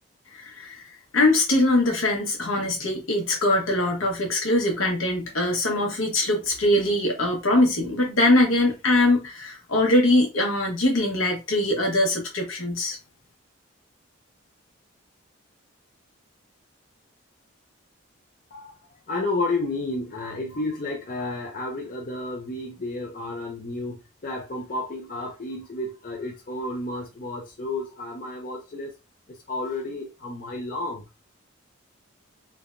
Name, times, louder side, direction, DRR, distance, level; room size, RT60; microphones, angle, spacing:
voice 1, 0.3-0.8 1.1-13.0, left 1 dB, 75° left, 1.0 m, -22 dB
voice 2, 19.1-24.0 24.2-28.9 29.5-31.0, left 2 dB, 40° left, 0.5 m, -31 dB
3.3 x 2.2 x 2.4 m
head